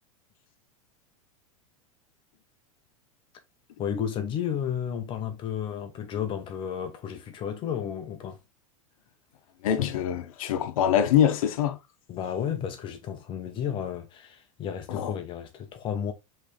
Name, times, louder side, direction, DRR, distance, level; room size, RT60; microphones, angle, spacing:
voice 1, 3.8-8.4 12.1-16.1, left 8 dB, 30° left, 0.7 m, -32 dB
voice 2, 9.6-11.8 14.9-15.1, left 10 dB, 75° left, 0.8 m, -24 dB
4.9 x 3.3 x 3.1 m
supercardioid pair, 150°, 18 cm